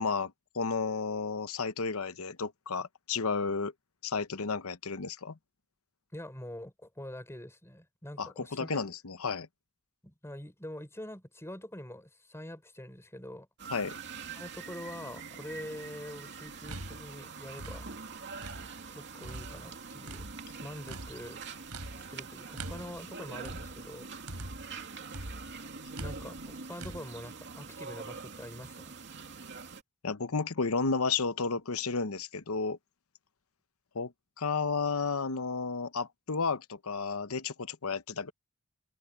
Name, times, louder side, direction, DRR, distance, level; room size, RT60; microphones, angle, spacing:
voice 1, 0.0-3.7 4.0-5.4 8.2-9.5 13.7-14.0 30.0-32.8 33.9-34.1 34.4-38.3, left 4 dB, 75° left, 0.9 m, -32 dB
voice 2, 6.1-8.8 10.0-13.5 14.3-17.9 18.9-20.3 20.6-21.4 21.9-24.1 26.0-28.9, left 1 dB, 10° left, 5.6 m, -45 dB
sound 1, 13.6-29.8, right 5 dB, 55° right, 2.6 m, -44 dB
sound 2, 16.5-18.9 19.2-24.8 25.1-27.0, right 1 dB, 90° right, 6.2 m, -44 dB
head